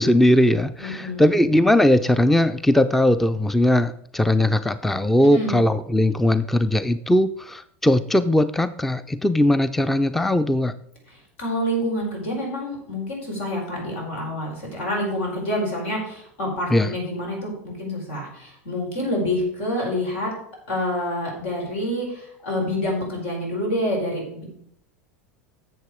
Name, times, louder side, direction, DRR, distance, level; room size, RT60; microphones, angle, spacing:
voice 1, 0.0-10.7 16.7-16.9, left 1 dB, 5° left, 14 dB, 0.4 m, -19 dB
voice 2, 0.8-1.4 5.3-5.6 11.1-20.3 20.7-24.4, left 1 dB, 75° left, 0 dB, 4.8 m, -27 dB
10.5 x 7.0 x 4.8 m, 0.69 s
hypercardioid pair, 95°, 7 cm